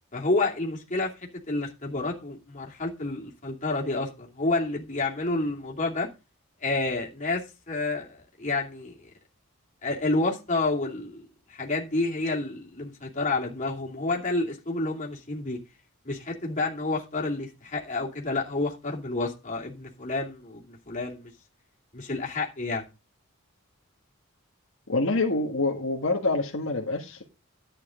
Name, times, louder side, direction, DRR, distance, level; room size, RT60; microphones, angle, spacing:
voice 1, 0.1-6.1 6.6-9.0 9.8-15.6 16.0-21.3 21.9-22.9, left 2 dB, 35° left, 2.7 m, -29 dB
voice 2, 24.9-27.2, left 2 dB, 65° left, 1.6 m, -26 dB
11.5 x 9.0 x 3.8 m
head